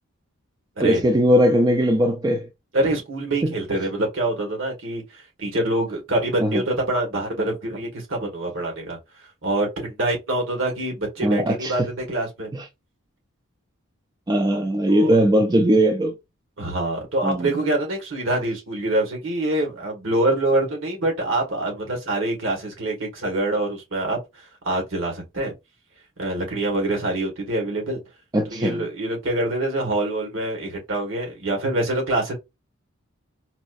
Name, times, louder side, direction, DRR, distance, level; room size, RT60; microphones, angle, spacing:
voice 1, 0.8-2.5 3.4-3.5 6.4-6.6 11.2-11.7 12.5-12.6 14.3-16.1 17.2-17.5 28.3-28.8, right 1 dB, 20° right, 0.4 m, -19 dB
voice 2, 2.7-9.0 9.4-12.5 14.5-15.2 16.6-24.2 24.6-25.5 26.2-28.0 28.5-32.3, right 1 dB, 65° right, 1.5 m, -25 dB
4.1 x 2.4 x 2.5 m
head